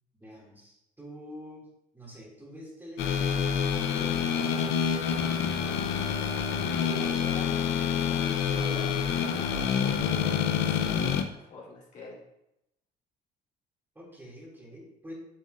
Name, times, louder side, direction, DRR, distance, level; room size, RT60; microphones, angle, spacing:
voice 1, 0.2-1.7 1.9-5.7 13.9-15.1, equal, 10° right, -4 dB, 2.8 m, -47 dB
sound 1, 3.0-11.2, left 7 dB, 90° left, 0.7 m, -27 dB
voice 2, 6.5-12.2, left 3 dB, 50° left, -5 dB, 2.8 m, -45 dB
7.7 x 7.3 x 2.7 m, 0.83 s
cardioid pair, 110°, 17 cm